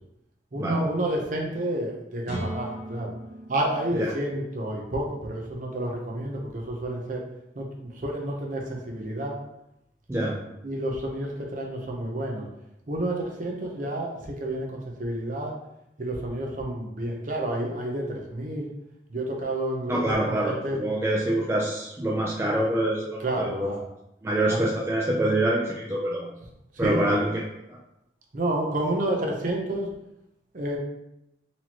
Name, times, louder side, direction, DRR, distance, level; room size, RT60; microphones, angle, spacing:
voice 1, 0.5-3.1 3.5-7.2 7.6-9.3 10.6-12.5 12.9-15.5 16.0-18.7 19.1-20.8 23.2-23.8 24.5-24.6 26.7-27.2 28.3-29.9 30.5-30.8, right 1 dB, 45° right, 0 dB, 0.7 m, -30 dB
sound 1, 2.2-6.0, right 1 dB, 35° left, 1.4 m, -39 dB
voice 2, 19.9-23.7 24.2-26.4 26.8-27.4 27.7-27.8, right 1 dB, 15° right, -3 dB, 0.3 m, -26 dB
4.2 x 2.9 x 2.9 m, 0.85 s
head